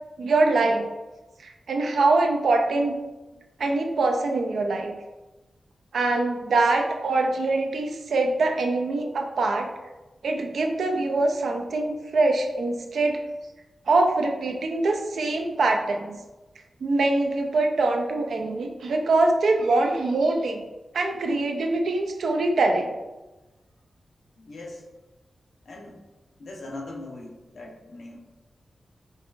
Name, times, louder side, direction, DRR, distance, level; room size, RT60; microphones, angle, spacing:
voice 1, 0.2-0.9 1.4-2.9 3.6-4.9 5.9-9.7 10.2-13.2 13.9-16.1 16.8-20.6 20.9-22.9, right 2 dB, 80° right, 3 dB, 0.4 m, -23 dB
voice 2, 24.4-24.8 25.6-26.0 26.4-28.2, left 2 dB, 75° left, -1 dB, 0.7 m, -40 dB
5.4 x 2.2 x 2.4 m, 1.1 s
cardioid pair, 70°, 0 cm